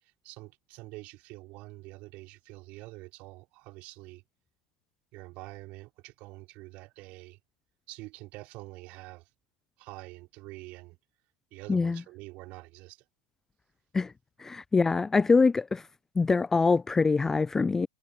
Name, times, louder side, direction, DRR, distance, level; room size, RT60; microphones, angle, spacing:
voice 1, 0.0-4.2 5.1-7.4 7.9-9.3 9.8-11.0 11.5-13.1, right 21 dB, 45° right, 3.9 m, -46 dB
voice 2, 11.7-12.0 13.9-14.1 14.4-15.9 16.2-17.9, left 4 dB, 10° left, 0.4 m, -24 dB
figure-of-eight pair, 90°, 3 cm